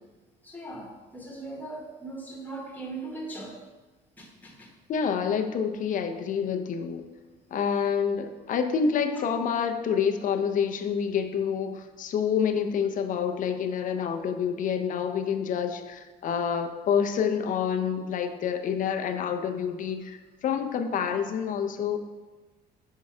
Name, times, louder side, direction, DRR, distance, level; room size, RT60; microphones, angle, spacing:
voice 1, 0.4-3.5 4.2-4.7, right 2 dB, 10° left, -1 dB, 1.3 m, -39 dB
voice 2, 4.9-7.1 7.5-22.0, left 7 dB, 50° left, 7 dB, 0.6 m, -28 dB
5.4 x 3.7 x 4.7 m, 1.2 s
cardioid pair, 110°, 17 cm